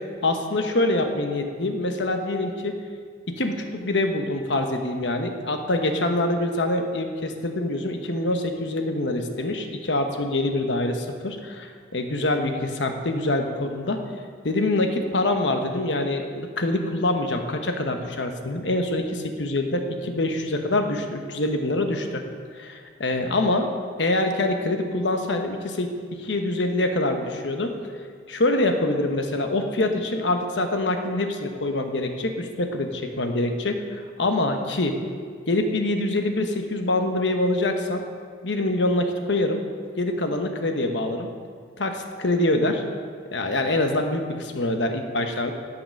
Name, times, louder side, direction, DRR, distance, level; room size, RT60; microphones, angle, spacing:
voice 1, 0.2-2.8 3.3-14.0 14.4-22.2 22.5-23.7 24.0-25.9 26.2-27.7 28.3-35.0 35.5-38.0 38.4-39.6 40.0-41.3 41.8-42.8 43.3-45.5, left 2 dB, 75° left, 5 dB, 1.1 m, -25 dB
9.1 x 8.0 x 6.4 m, 2.1 s
head